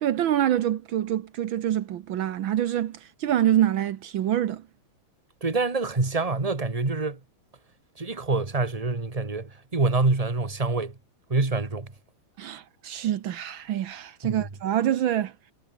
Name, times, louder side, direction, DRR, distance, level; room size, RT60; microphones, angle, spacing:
voice 1, 0.0-4.6 12.4-15.3, right 11 dB, 75° right, 1.7 m, -26 dB
voice 2, 5.4-7.2 8.0-11.0 11.3-11.9 14.2-14.5, right 3 dB, 20° right, 1.9 m, -26 dB
omnidirectional pair, 2.2 m